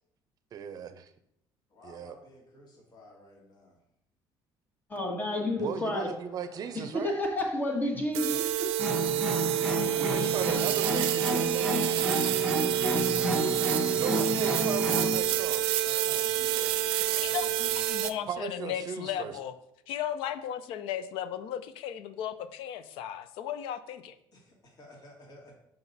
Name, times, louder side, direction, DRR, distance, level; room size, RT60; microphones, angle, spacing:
voice 1, 0.5-1.1 1.8-2.2 5.6-7.2 9.6-9.7 10.0-12.0 13.9-15.7 18.3-19.3, right 7 dB, 45° right, 10 dB, 0.6 m, -37 dB
voice 2, 1.7-3.8 8.2-8.5 9.7-11.9 13.6-18.3 24.3-25.5, left 1 dB, 45° left, -2 dB, 2.0 m, -51 dB
voice 3, 4.9-6.1 6.7-8.6, left 1 dB, 20° left, 2 dB, 1.3 m, -30 dB
sound 1, 8.1-18.1, right 12 dB, 85° right, 0.4 m, -28 dB
sound 2, 8.8-15.2, equal, 5° left, 1.1 m, -31 dB
voice 4, 17.2-19.5 19.9-24.2, left 10 dB, 80° left, 13 dB, 0.5 m, -36 dB
5.9 x 5.3 x 4.1 m, 0.78 s
cardioid pair, 130°, 9 cm